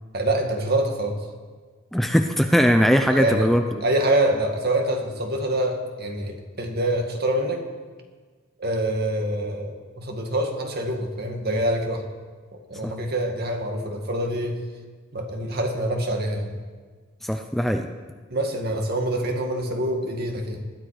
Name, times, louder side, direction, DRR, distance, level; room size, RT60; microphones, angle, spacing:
voice 1, 0.1-1.2 3.1-3.5 3.8-7.6 8.6-12.0 12.5-14.6 15.1-16.6 18.3-20.6, right 1 dB, 50° right, 3 dB, 2.1 m, -25 dB
voice 2, 1.9-3.8 12.8-12.9 17.2-17.9, equal, ahead, 5 dB, 0.6 m, -20 dB
20.5 x 13.0 x 5.0 m, 1.5 s
head